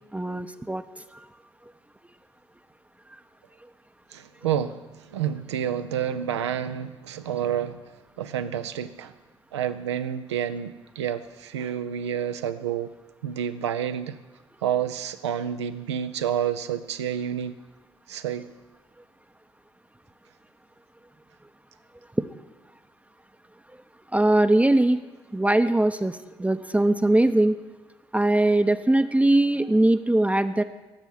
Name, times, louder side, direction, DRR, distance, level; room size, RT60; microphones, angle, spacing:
voice 1, 0.1-0.8 24.1-25.0 25.3-27.5 28.1-30.6, right 1 dB, 10° right, 9 dB, 0.7 m, -21 dB
voice 2, 4.1-7.8 8.2-9.2 9.5-12.9 13.2-14.2 14.6-17.6 18.1-18.5, right 9 dB, 80° right, 10 dB, 0.6 m, -29 dB
14.5 x 8.0 x 9.6 m, 1.2 s
figure-of-eight pair, 45°, 14 cm